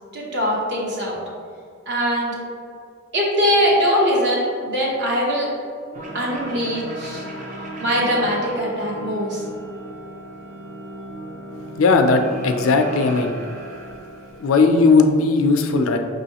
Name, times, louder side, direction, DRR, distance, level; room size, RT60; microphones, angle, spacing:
voice 1, 0.1-1.2 1.9-2.4 3.1-5.5 6.1-7.2 7.8-9.4, equal, 55° right, -3 dB, 1.0 m, -21 dB
sound 1, 5.9-14.9, right 1 dB, 40° right, 0.6 m, -36 dB
voice 2, 11.8-13.4 14.4-16.0, left 3 dB, 80° left, 6 dB, 0.4 m, -17 dB
5.4 x 3.1 x 2.9 m, 2.2 s
head